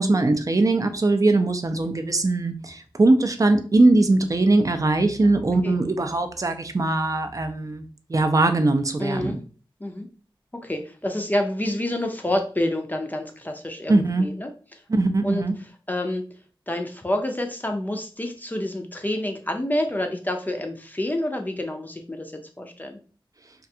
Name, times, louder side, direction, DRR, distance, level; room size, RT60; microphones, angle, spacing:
voice 1, 0.0-9.4 13.9-14.3 14.9-15.5, right 2 dB, 40° right, 7 dB, 0.4 m, -21 dB
voice 2, 5.2-5.8 9.0-9.4 9.8-10.1 10.5-14.8 15.2-15.5 15.9-16.3 16.7-23.0, left 1 dB, 20° left, 4 dB, 0.4 m, -28 dB
2.4 x 2.2 x 2.7 m, 0.39 s
cardioid pair, 45°, 9 cm